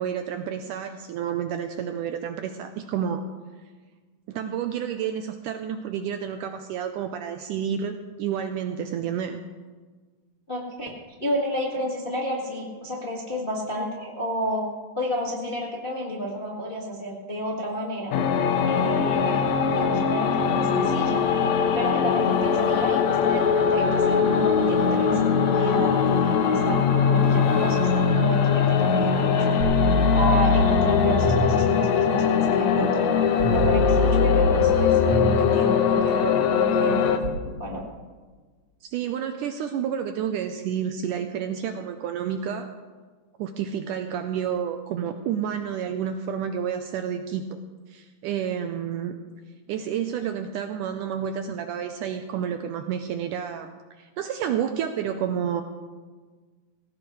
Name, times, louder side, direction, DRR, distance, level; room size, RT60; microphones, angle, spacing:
voice 1, 0.0-3.2 4.3-9.4 38.9-42.7 43.4-47.6 47.9-49.1 49.7-55.6, right 8 dB, 80° right, 7 dB, 1.9 m, -30 dB
voice 2, 10.5-10.9 11.2-14.6 14.9-18.1 18.6-21.2 21.7-29.6 30.1-33.1 33.5-37.1 37.4-37.8, equal, 30° left, -3 dB, 0.9 m, -30 dB
sound 1, 18.1-37.2, left 6 dB, 75° left, 1.7 m, -21 dB
sound 2, 29.6-31.6 33.4-35.4 37.2-37.3, left 1 dB, 55° right, 1.1 m, -24 dB
17.5 x 17.5 x 3.2 m, 1.4 s
omnidirectional pair, 4.2 m